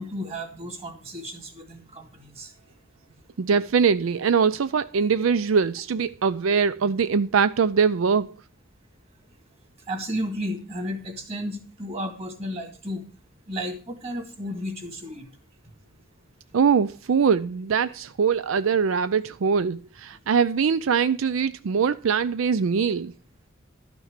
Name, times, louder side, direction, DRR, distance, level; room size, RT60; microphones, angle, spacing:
voice 1, 0.0-2.5 9.9-13.0 13.5-15.3, equal, 30° right, 2.4 m, -33 dB
voice 2, 3.4-8.3 16.5-23.1, right 6 dB, 80° right, 0.4 m, -22 dB
12.0 x 6.1 x 6.5 m
head